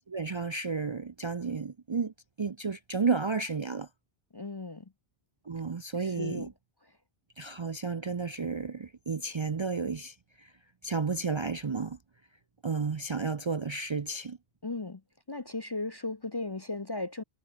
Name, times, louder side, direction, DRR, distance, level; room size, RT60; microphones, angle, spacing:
voice 1, 0.1-3.9 5.5-6.5 7.4-10.5 10.8-12.0 12.6-14.4, right 4 dB, 35° right, 0.5 m, -32 dB
voice 2, 4.3-4.8 6.0-6.5 14.6-15.0 15.3-17.2, left 2 dB, 30° left, 0.6 m, -36 dB
omnidirectional pair, 1.0 m